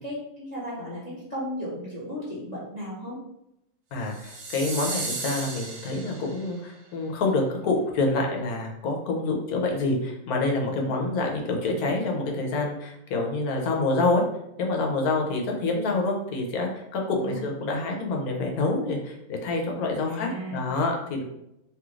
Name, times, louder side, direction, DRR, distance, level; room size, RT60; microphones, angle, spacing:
voice 1, 0.0-3.2 10.7-10.9 17.2-17.4 20.0-20.7, left 1 dB, 35° left, -8 dB, 0.9 m, -35 dB
voice 2, 3.9-14.2 14.6-21.2, left 2 dB, 85° left, 1 dB, 1.2 m, -27 dB
sound 1, 4.1-6.6, right 3 dB, 70° right, 1.1 m, -35 dB
3.1 x 2.4 x 3.1 m, 0.84 s
omnidirectional pair, 1.5 m